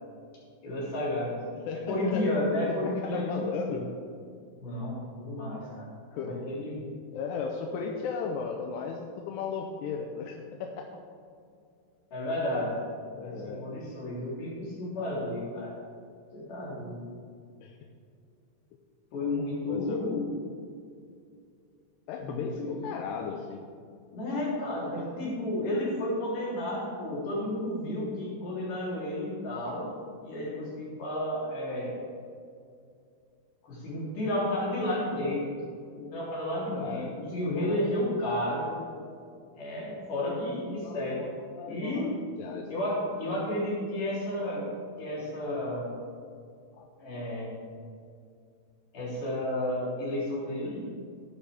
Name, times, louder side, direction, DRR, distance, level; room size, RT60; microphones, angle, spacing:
voice 1, 0.6-1.4 1.9-3.8 4.6-6.8 12.1-12.8 13.1-15.8 16.3-17.1 19.1-20.3 22.2-22.8 24.1-29.9 30.2-31.9 33.6-35.5 35.9-38.6 39.5-41.2 41.7-42.1 42.7-44.7 45.0-45.9 47.0-47.6 48.9-50.8, left 1 dB, 50° left, -6 dB, 4.8 m, -32 dB
voice 2, 1.5-2.3 2.7-3.9 6.1-6.4 7.1-11.0 13.1-13.8 17.6-17.8 19.7-20.2 22.1-23.7 25.0-25.1 36.7-37.1 37.6-37.9 38.5-39.2 40.2-40.4 40.8-42.7 43.3-43.4 46.8-46.9, left 5 dB, 85° left, 3 dB, 2.9 m, -36 dB
13.5 x 12.0 x 3.5 m, 2.4 s
omnidirectional pair, 4.8 m